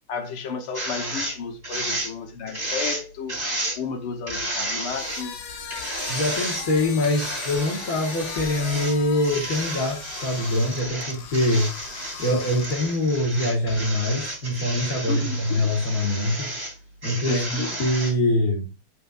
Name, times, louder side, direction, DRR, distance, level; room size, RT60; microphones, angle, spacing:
voice 1, 0.1-3.4 3.8-5.3 15.1-15.7 17.3-17.7, left 5 dB, 80° left, 2.0 m, -32 dB
sound 1, 0.7-1.4 1.6-2.1 2.5-3.0 3.3-3.8 4.3-5.2 5.7-6.6 7.0-9.0 9.2-16.7 17.0-18.1, right 1 dB, 20° right, 3.5 m, -32 dB
sound 2, 4.8-13.0, left 6 dB, 60° left, 1.4 m, -38 dB
voice 2, 6.1-11.7 12.2-16.5 17.0-18.7, left 1 dB, 45° left, 1.9 m, -24 dB
9.3 x 5.6 x 2.5 m
omnidirectional pair, 2.4 m